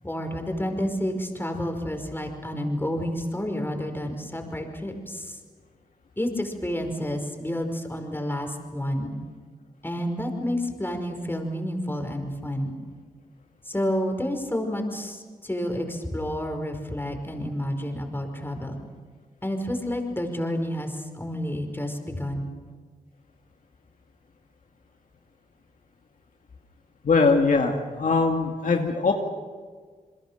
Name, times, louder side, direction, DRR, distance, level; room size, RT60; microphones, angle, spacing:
voice 1, 0.0-5.4 6.2-9.1 9.8-12.8 13.7-18.7 19.4-22.5, equal, 15° left, 4 dB, 5.3 m, -30 dB
voice 2, 27.0-29.1, left 4 dB, 65° left, 2 dB, 2.3 m, -21 dB
29.0 x 21.5 x 6.7 m, 1.6 s
cardioid pair, 55°, 15 cm